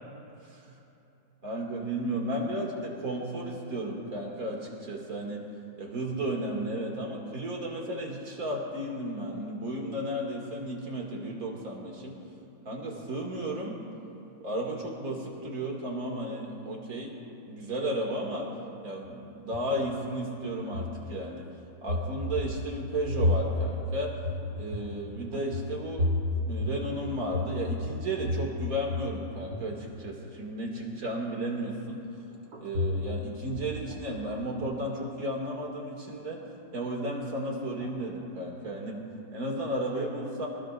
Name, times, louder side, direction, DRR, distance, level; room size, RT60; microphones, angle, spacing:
voice 1, 1.4-5.4 5.8-12.2 12.6-13.8 14.4-17.1 17.5-18.5 18.8-21.5 21.8-24.1 24.6-26.1 26.4-32.0 32.6-36.4 36.7-39.0 39.3-40.5, right 1 dB, 50° right, -1 dB, 2.7 m, -33 dB
sound 1, 19.0-20.2 20.6-21.5 21.9-29.1 29.3-29.8 32.5-33.3 33.5-34.5 37.6-37.9 38.2-38.3, left 2 dB, 70° right, 3.9 m, -32 dB
24.5 x 19.0 x 2.5 m, 2.9 s
omnidirectional pair, 2.0 m